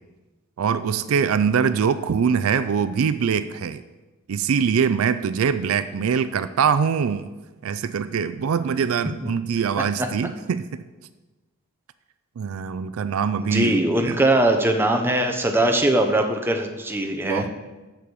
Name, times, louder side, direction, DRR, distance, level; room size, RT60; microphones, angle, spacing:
voice 1, 0.6-3.8 4.3-7.3 7.6-10.8 12.4-13.8 14.1-14.2 17.3-17.5, right 6 dB, 65° right, 13 dB, 0.4 m, -23 dB
voice 2, 13.4-17.5, right 1 dB, 10° right, 4 dB, 0.8 m, -21 dB
7.6 x 6.3 x 6.8 m, 1.2 s
head